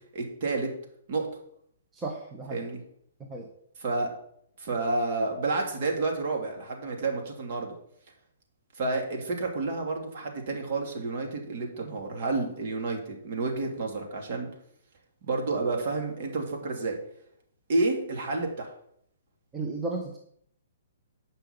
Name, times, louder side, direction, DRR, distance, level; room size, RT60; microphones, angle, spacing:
voice 1, 0.1-0.7 1.1-1.3 2.5-2.8 3.8-4.1 4.6-7.7 8.7-14.5 15.2-17.0 17.7-18.7, right 3 dB, 45° right, 1 dB, 2.5 m, -30 dB
voice 2, 1.9-2.7 3.3-3.5 19.5-20.2, right 3 dB, 15° right, 0 dB, 1.1 m, -34 dB
9.1 x 5.6 x 5.6 m, 0.69 s
figure-of-eight pair, 120°, 0 cm